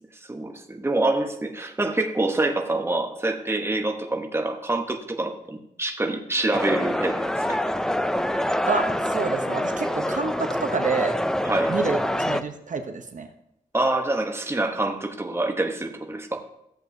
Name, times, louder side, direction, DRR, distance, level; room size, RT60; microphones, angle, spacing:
voice 1, 0.3-7.6 11.4-11.8 13.7-16.4, right 2 dB, 15° right, 4 dB, 0.9 m, -26 dB
sound 1, 6.5-12.4, equal, 5° left, 0.4 m, -25 dB
voice 2, 8.7-11.2 11.7-13.3, right 4 dB, 55° right, 6 dB, 0.7 m, -28 dB
14.0 x 7.6 x 2.6 m, 0.81 s
wide cardioid pair, 95°, 15 cm